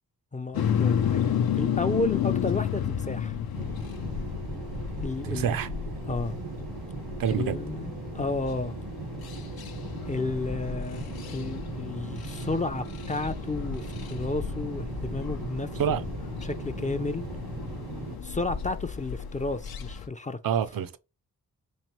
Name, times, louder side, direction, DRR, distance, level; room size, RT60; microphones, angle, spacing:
voice 1, 0.3-3.4 5.0-5.5 6.1-6.3 7.3-8.7 10.1-11.1 11.3-15.8 16.4-17.2 18.2-20.4, left 3 dB, 20° left, 0.4 m, -32 dB
sound 1, 0.5-20.1, left 8 dB, 75° left, 0.6 m, -33 dB
sound 2, 3.5-18.2, right 3 dB, 90° right, 1.2 m, -38 dB
voice 2, 5.2-5.7 7.2-7.6 15.8-16.0 20.4-21.0, right 8 dB, 65° right, 0.5 m, -27 dB
3.5 x 3.1 x 3.0 m
cardioid pair, 40°, 37 cm